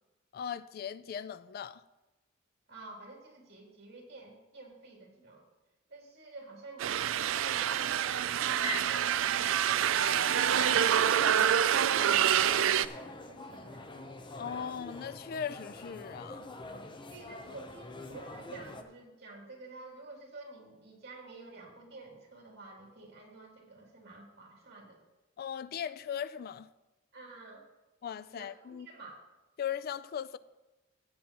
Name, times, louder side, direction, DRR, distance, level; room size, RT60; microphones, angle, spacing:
voice 1, 0.3-1.8 14.4-16.5 25.4-26.7 28.0-28.9 29.6-30.4, left 8 dB, 50° left, 0.3 m, -38 dB
voice 2, 2.7-5.4 5.9-12.5 13.0-13.9 17.1-25.0 27.1-27.6 28.3-28.5 28.7-29.2, right 3 dB, 60° right, 2.7 m, -50 dB
sound 1, 6.8-12.9, right 9 dB, 85° right, 0.4 m, -27 dB
Piano, 8.6-10.9, left 2 dB, 35° right, 2.1 m, -42 dB
sound 2, 12.4-18.8, left 2 dB, 25° left, 0.7 m, -46 dB
15.5 x 8.7 x 3.0 m
head